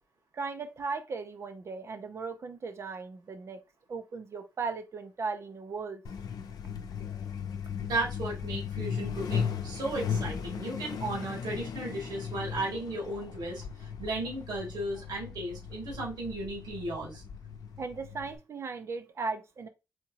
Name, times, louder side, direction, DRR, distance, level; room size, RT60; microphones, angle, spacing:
voice 1, 0.3-3.6 3.9-6.0 11.2-11.3 17.8-19.7, right 4 dB, 40° right, 0.8 m, -37 dB
Truck, 6.0-18.4, left 7 dB, 70° left, 0.7 m, -37 dB
voice 2, 7.8-17.2, right 2 dB, 80° right, 2.5 m, -35 dB
4.4 x 3.7 x 2.9 m
wide cardioid pair, 180°, 7 cm